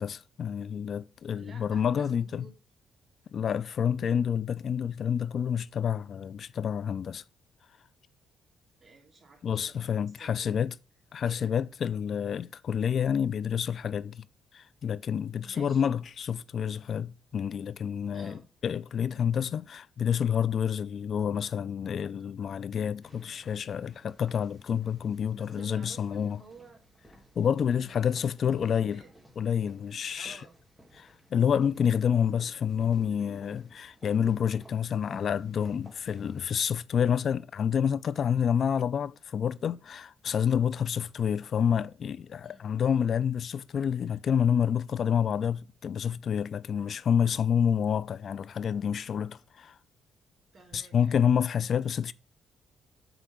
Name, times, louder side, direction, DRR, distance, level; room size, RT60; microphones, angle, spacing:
voice 1, 0.0-2.5 3.3-7.2 9.4-10.7 11.1-14.2 14.5-26.4 27.4-29.0 29.4-30.4 31.0-49.7 50.7-52.1, left 8 dB, 55° left, 0.4 m, -28 dB
voice 2, 1.3-2.5 8.8-10.5 11.2-11.6 15.4-15.9 18.1-18.4 25.3-26.8 27.7-29.1 30.2-30.5 41.2-41.4 42.4-42.6 50.5-51.3, right 4 dB, 40° right, 3.0 m, -53 dB
sound 1, 23.0-36.5, equal, 5° right, 1.7 m, -57 dB
8.0 x 3.4 x 6.1 m
cardioid pair, 90°, 0 cm